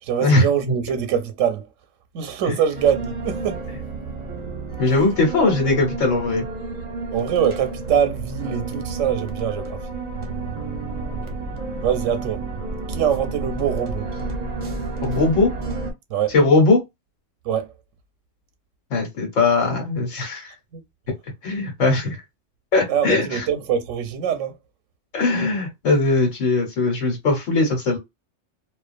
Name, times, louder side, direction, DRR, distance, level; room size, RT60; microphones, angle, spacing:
voice 1, 0.0-1.7 2.1-3.6 4.9-5.1 7.1-9.9 11.8-12.4 12.9-14.1 16.1-16.4 17.4-17.7 20.7-20.8 22.9-24.6, right 8 dB, 85° right, 0.9 m, -23 dB
sound 1, 2.7-15.9, right 3 dB, 45° right, 0.6 m, -30 dB
voice 2, 4.8-6.4 15.0-15.5 16.3-16.8 18.9-20.5 21.4-22.2 22.7-23.4 25.1-28.0, left 3 dB, 85° left, 1.3 m, -19 dB
2.3 x 2.3 x 2.4 m
omnidirectional pair, 1.3 m